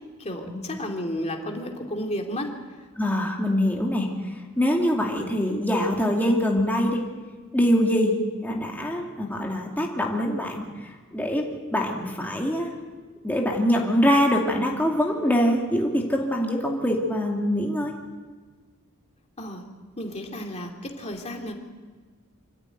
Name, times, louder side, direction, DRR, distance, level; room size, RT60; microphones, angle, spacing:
voice 1, 0.2-2.5 19.4-19.7 20.0-21.5, equal, 30° left, 2 dB, 2.8 m, -32 dB
voice 2, 3.0-4.1 4.6-7.0 7.5-8.1 8.4-11.4 11.7-12.7 13.2-17.9, equal, 10° left, -1 dB, 2.5 m, -24 dB
26.0 x 14.0 x 9.3 m, 1.4 s
head